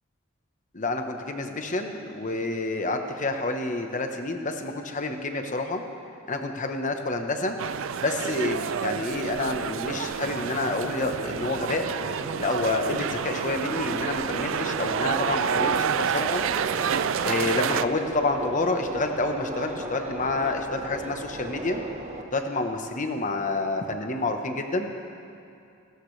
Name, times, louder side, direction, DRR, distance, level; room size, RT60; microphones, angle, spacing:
voice 1, 0.7-5.8 6.3-7.6 8.0-11.8 12.4-16.5 17.2-21.8 22.3-24.9, left 2 dB, 40° left, 5 dB, 1.1 m, -28 dB
sound 1, 7.6-17.9, right 7 dB, 65° right, 0.4 m, -29 dB
Subway metro underground, 10.8-22.2, right 2 dB, 35° right, 1.2 m, -37 dB
28.5 x 13.5 x 3.3 m, 2.5 s
head